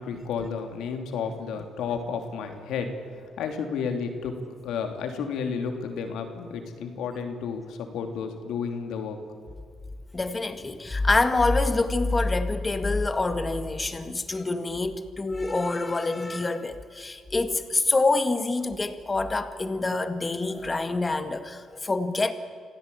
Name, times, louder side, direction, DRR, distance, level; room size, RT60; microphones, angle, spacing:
voice 1, 0.0-4.4 4.6-9.2, left 6 dB, 85° left, 5 dB, 3.1 m, -32 dB
voice 2, 10.1-22.3, left 3 dB, 25° left, 9 dB, 1.9 m, -26 dB
26.5 x 16.5 x 8.6 m, 2.2 s
cardioid pair, 90°, 0 cm